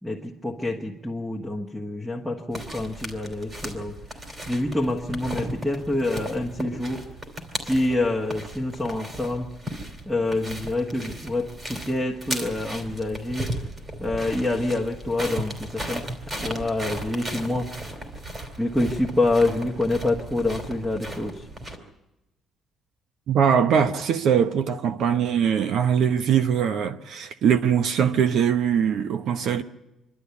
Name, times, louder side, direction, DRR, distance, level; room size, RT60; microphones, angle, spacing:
voice 1, 0.0-4.0 4.5-7.0 7.6-9.5 10.1-13.5 14.0-16.1 16.4-17.7 18.6-21.4, left 2 dB, 5° right, 1.5 m, -26 dB
sound 1, 2.5-21.8, right 1 dB, 25° right, 3.2 m, -36 dB
voice 2, 23.3-29.6, right 8 dB, 65° right, 0.9 m, -22 dB
25.5 x 12.5 x 8.3 m
cardioid pair, 150°, 0 cm